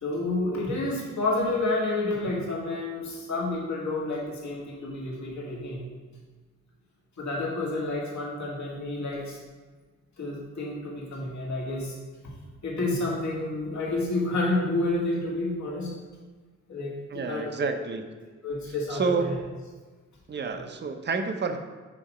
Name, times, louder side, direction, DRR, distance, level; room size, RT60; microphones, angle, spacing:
voice 1, 0.0-5.9 7.2-9.4 10.2-12.0 12.6-15.9 16.7-17.5 18.4-19.4 20.5-20.6, left 2 dB, 65° left, -4 dB, 1.8 m, -29 dB
voice 2, 17.1-18.0 18.9-19.4 20.3-21.6, right 5 dB, 35° right, 6 dB, 0.6 m, -29 dB
8.4 x 2.8 x 4.9 m, 1.4 s
cardioid pair, 90°, 31 cm